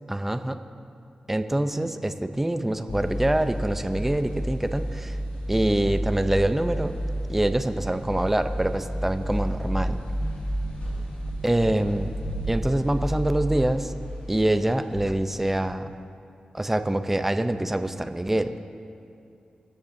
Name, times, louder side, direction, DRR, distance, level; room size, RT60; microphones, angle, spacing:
voice 1, 0.1-0.6 1.3-5.1 5.5-7.0 7.3-10.0 11.4-12.1 12.5-13.9 14.3-15.9 16.5-18.5, right 1 dB, 10° right, 9 dB, 0.6 m, -25 dB
sound 1, 2.9-15.5, equal, 90° left, 4.4 m, -31 dB
25.0 x 14.5 x 2.7 m, 2.6 s
wide cardioid pair, 130°, 2 cm